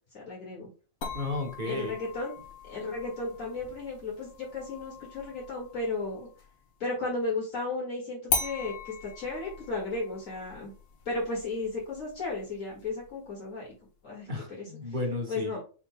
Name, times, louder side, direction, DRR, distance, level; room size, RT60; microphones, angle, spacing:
voice 1, 0.1-0.7 1.6-2.3 2.7-6.3 6.8-10.7 11.1-13.7 14.0-14.3 15.3-15.6, left 3 dB, 70° left, -5 dB, 2.3 m, -34 dB
sound 1, 1.0-6.6 8.3-13.3, left 4 dB, 85° left, 1.7 m, -39 dB
voice 2, 1.1-2.0 14.3-15.5, left 2 dB, 35° right, 1 dB, 1.5 m, -33 dB
6.2 x 3.9 x 2.2 m, 0.36 s
omnidirectional pair, 1.4 m